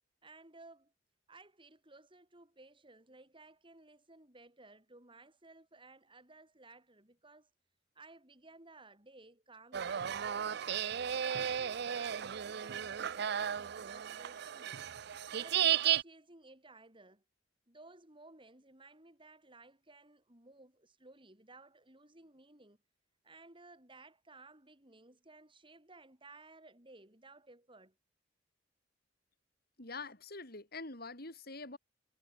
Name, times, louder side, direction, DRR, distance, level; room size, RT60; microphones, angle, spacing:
voice 1, 0.2-0.9 1.3-7.5 7.9-10.9 11.2-14.8 15.3-17.2 17.7-22.8 23.2-27.9, right 2 dB, 25° right, 6.9 m, -58 dB
sound 1, 9.7-16.0, right 9 dB, 60° right, 0.5 m, -34 dB
voice 2, 29.8-31.8, left 3 dB, 55° left, 5.8 m, -45 dB
head